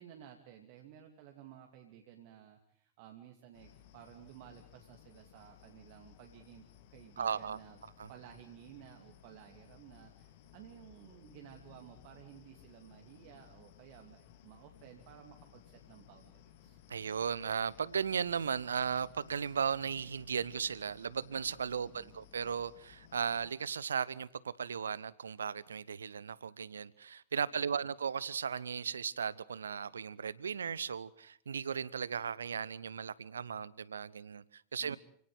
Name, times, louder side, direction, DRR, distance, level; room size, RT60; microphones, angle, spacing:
voice 1, 0.0-7.8 8.1-16.8 21.8-22.2 27.7-27.9 34.8-35.0, right 10 dB, 50° right, 2.8 m, -55 dB
sound 1, 3.5-23.5, left 10 dB, 50° left, 2.9 m, -59 dB
voice 2, 7.2-7.6 8.0-8.1 16.9-35.0, right 7 dB, 70° right, 0.9 m, -36 dB
29.0 x 18.0 x 8.1 m
figure-of-eight pair, 90°, 0 cm